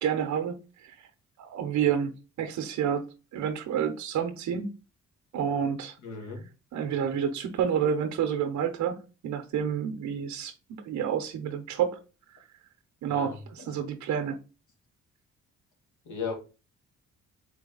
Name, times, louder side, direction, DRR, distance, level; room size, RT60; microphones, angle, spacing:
voice 1, 0.0-1.1 1.4-2.1 2.4-3.0 3.3-4.7 5.3-6.0 6.7-12.0 13.0-14.4, right 8 dB, 70° right, 0.7 m, -29 dB
voice 2, 6.0-6.5 13.1-13.4 16.0-16.3, left 5 dB, 75° left, 1.4 m, -35 dB
4.1 x 3.3 x 3.8 m
cardioid pair, 90°, 30 cm